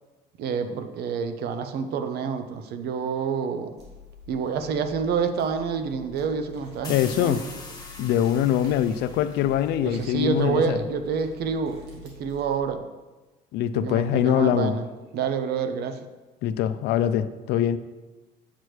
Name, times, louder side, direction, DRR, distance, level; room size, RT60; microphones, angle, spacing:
voice 1, 0.4-3.7 4.3-7.4 9.8-12.8 13.7-14.9 15.1-16.0, right 6 dB, 70° right, 8 dB, 0.7 m, -28 dB
sound 1, 3.8-12.6, left 5 dB, 90° right, 2.0 m, -47 dB
sound 2, 6.8-10.5, left 3 dB, 20° left, 1.4 m, -43 dB
voice 2, 6.9-7.4 8.0-10.8 13.5-14.7 16.4-17.8, left 10 dB, 85° left, 13 dB, 0.4 m, -23 dB
8.1 x 6.1 x 3.2 m, 1.2 s
cardioid pair, 110°, 17 cm